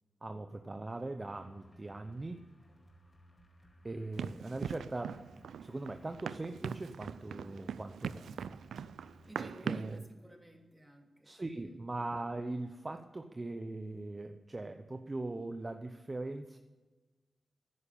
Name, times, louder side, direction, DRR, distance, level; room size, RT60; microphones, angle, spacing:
voice 1, 0.2-2.4 3.8-5.1 5.6-8.6 9.4-10.0 11.3-16.6, right 2 dB, 35° right, 7 dB, 0.8 m, -40 dB
sound 1, 1.2-9.3, right 1 dB, 35° left, 4.5 m, -61 dB
Run, 4.2-10.0, right 7 dB, 90° right, 0.3 m, -41 dB
voice 2, 9.2-11.9, right 1 dB, 15° right, 2 dB, 3.0 m, -54 dB
10.5 x 9.7 x 8.5 m, 1.2 s
cardioid pair, 45°, 0 cm